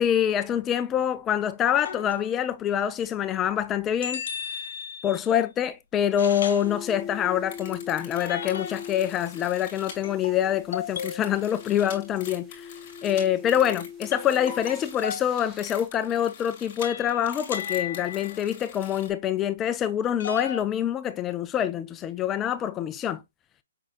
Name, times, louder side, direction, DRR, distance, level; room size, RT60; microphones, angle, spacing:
voice 1, 0.0-4.2 5.0-12.7 13.0-23.2, left 10 dB, 20° left, 0.4 m, -26 dB
sound 1, 1.8-2.5 4.0-5.4 6.2-6.7 8.2-9.0 10.0-11.3 14.1-15.3 16.8-18.5 20.2-20.6, left 7 dB, 60° left, 1.3 m, -35 dB
sound 2, 6.6-15.9, left 7 dB, 5° right, 1.3 m, -42 dB
sound 3, 7.4-10.0 10.7-19.1, left 7 dB, 40° left, 2.0 m, -44 dB
5.5 x 3.7 x 2.3 m
hypercardioid pair, 145°, 0 cm